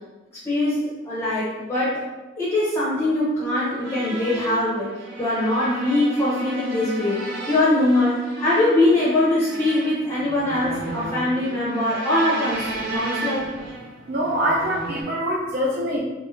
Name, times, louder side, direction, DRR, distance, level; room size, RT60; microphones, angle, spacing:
voice 1, 0.4-0.8 1.0-2.0 2.4-4.9 5.2-13.5, left 1 dB, 15° left, -8 dB, 0.6 m, -22 dB
sound 1, 3.8-15.0, right 2 dB, 70° right, 0.9 m, -33 dB
voice 2, 14.1-16.0, equal, 50° right, -4 dB, 0.4 m, -24 dB
2.9 x 2.6 x 3.0 m, 1.1 s
head